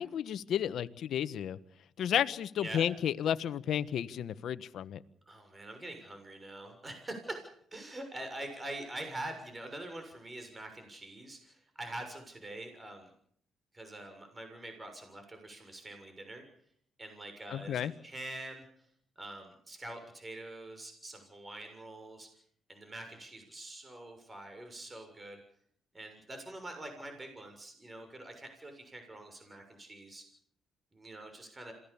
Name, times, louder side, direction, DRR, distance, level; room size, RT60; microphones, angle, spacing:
voice 1, 0.0-1.6 2.0-5.0 17.5-17.9, left 9 dB, 70° left, 13 dB, 1.3 m, -32 dB
voice 2, 5.3-13.1 13.7-16.4 17.0-18.7 19.2-22.3 22.7-25.4 25.9-30.2 30.9-31.7, right 1 dB, 20° right, 6 dB, 6.8 m, -45 dB
27.5 x 18.5 x 7.2 m, 0.65 s
cardioid pair, 90°, 0 cm